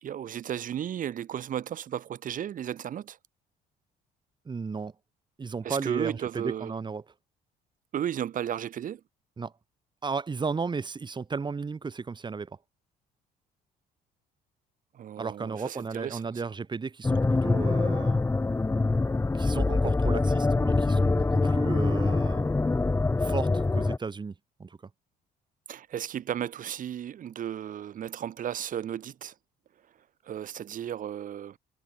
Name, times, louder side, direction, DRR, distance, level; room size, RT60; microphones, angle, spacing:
voice 1, 0.0-3.2 5.6-6.7 7.9-9.0 14.9-16.4 25.7-29.3 30.2-31.6, right 10 dB, 55° right, 2.6 m, -34 dB
voice 2, 4.4-4.9 5.4-7.0 9.4-9.5 10.0-12.6 15.2-18.2 19.3-22.5 23.2-24.8, right 4 dB, 25° right, 5.0 m, -34 dB
sound 1, 17.0-24.0, left 3 dB, 15° left, 1.3 m, -24 dB
cardioid pair, 110°, 17 cm